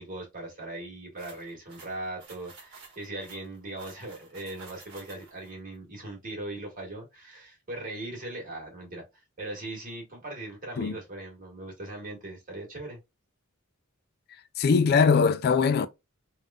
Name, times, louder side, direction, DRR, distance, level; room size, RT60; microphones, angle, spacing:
voice 1, 0.0-13.0, right 2 dB, 40° right, 1.6 m, -39 dB
sound 1, 1.2-5.5, right 4 dB, 60° right, 1.2 m, -51 dB
voice 2, 14.6-15.9, left 5 dB, 45° left, 0.3 m, -21 dB
3.4 x 2.5 x 2.3 m
head